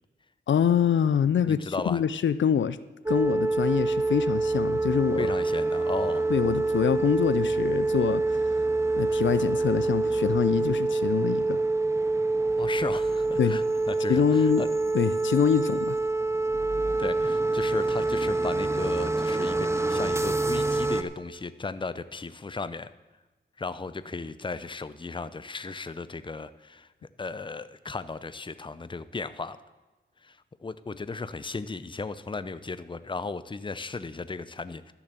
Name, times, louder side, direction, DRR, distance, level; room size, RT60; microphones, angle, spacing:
voice 1, 0.5-2.8 3.1-5.3 6.3-8.2 8.9-11.6 13.4-13.6 14.1-14.6 14.9-16.0, left 8 dB, 80° left, 15 dB, 0.5 m, -25 dB
voice 2, 1.5-2.0 5.2-6.3 12.6-14.7 17.0-22.9 23.6-26.9 27.2-29.6 30.2-34.9, left 4 dB, 25° left, 14 dB, 0.6 m, -35 dB
sound 1, 3.1-21.0, right 3 dB, 15° right, 0.8 m, -26 dB
12.5 x 7.1 x 6.7 m, 1.2 s
wide cardioid pair, 75°, 19 cm